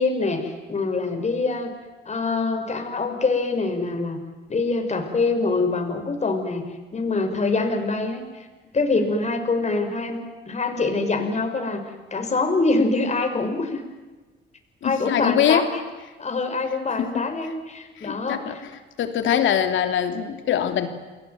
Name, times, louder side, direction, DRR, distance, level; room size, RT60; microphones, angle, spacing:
voice 1, 0.0-1.7 2.1-4.2 4.5-6.6 6.9-8.5 8.7-11.8 12.1-13.8 14.8-15.8 16.2-18.6, left 3 dB, 35° left, 5 dB, 6.0 m, -24 dB
voice 2, 14.8-15.7 17.0-17.2 18.0-18.7 19.0-20.9, left 9 dB, 75° left, 7 dB, 3.1 m, -23 dB
30.0 x 21.0 x 9.4 m, 1.3 s
cardioid pair, 90°, 20 cm